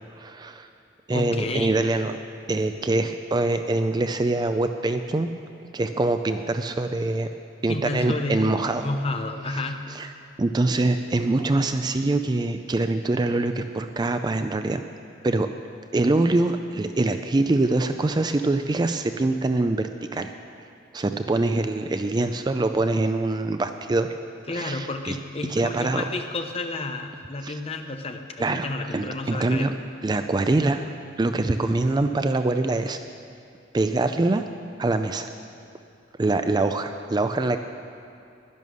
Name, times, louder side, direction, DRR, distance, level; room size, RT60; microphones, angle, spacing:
voice 1, 0.2-0.7 1.1-2.2 2.5-5.3 5.7-7.3 7.6-8.9 9.5-9.6 9.9-10.1 10.4-14.8 15.2-15.5 15.9-20.3 20.9-24.1 24.5-25.2 25.5-26.1 27.4-27.6 28.4-28.7 28.9-29.7 30.0-30.9 31.2-33.0 33.7-34.4 34.8-35.3 36.2-37.6, right 2 dB, 20° right, 8 dB, 0.4 m, -24 dB
voice 2, 1.1-1.7 7.7-9.9 24.5-29.7, left 2 dB, 30° left, 6 dB, 0.8 m, -31 dB
11.0 x 10.5 x 6.4 m, 2.6 s
head